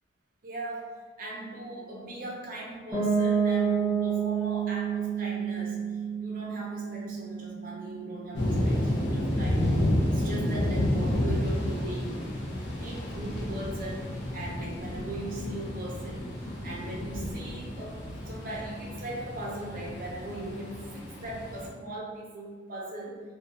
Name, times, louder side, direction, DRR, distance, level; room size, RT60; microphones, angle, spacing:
voice 1, 0.4-0.9 1.2-9.6 10.1-12.2 12.8-14.1 14.3-18.0 18.2-23.2, right 1 dB, 50° right, -3 dB, 0.6 m, -39 dB
Piano, 2.9-8.6, right 7 dB, 15° right, 1.0 m, -29 dB
sound 1, 8.3-21.7, left 1 dB, 70° left, 0.5 m, -31 dB
2.3 x 2.2 x 2.6 m, 1.5 s
head